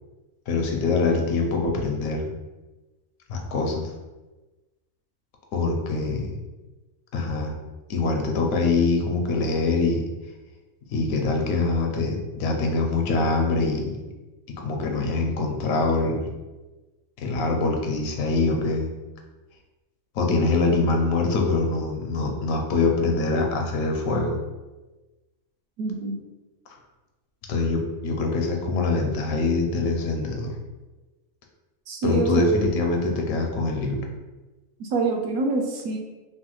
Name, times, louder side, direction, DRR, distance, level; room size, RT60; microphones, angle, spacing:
voice 1, 0.5-2.3 3.3-3.9 5.5-6.3 7.1-7.5 7.9-10.0 10.9-13.9 14.6-16.3 17.2-18.9 20.1-24.4 27.5-30.5 32.0-34.0, left 3 dB, 80° left, 2 dB, 1.0 m, -24 dB
voice 2, 25.8-26.2 31.9-32.3 34.8-36.0, right 3 dB, 80° right, 1 dB, 1.0 m, -26 dB
3.2 x 2.2 x 3.0 m, 1.1 s
omnidirectional pair, 1.5 m